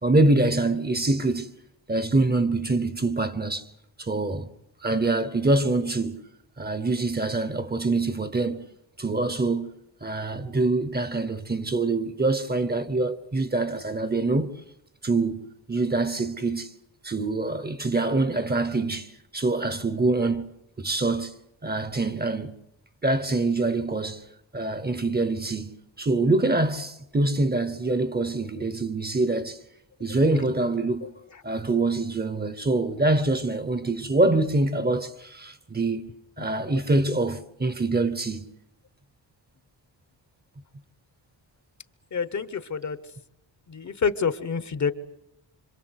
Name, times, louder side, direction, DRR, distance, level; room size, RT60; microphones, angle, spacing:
voice 1, 0.0-1.5 1.9-3.7 4.0-4.5 4.8-6.2 6.6-8.6 9.0-9.7 10.0-14.6 15.0-16.7 17.0-20.4 20.8-21.3 21.6-22.6 23.0-24.2 24.5-29.6 30.0-31.1 31.4-36.1 36.4-38.5, right 2 dB, 20° right, 1.0 m, -25 dB
voice 2, 42.1-43.0 43.7-44.9, left 6 dB, 40° left, 1.0 m, -27 dB
27.0 x 25.5 x 8.1 m
wide cardioid pair, 175°, 43 cm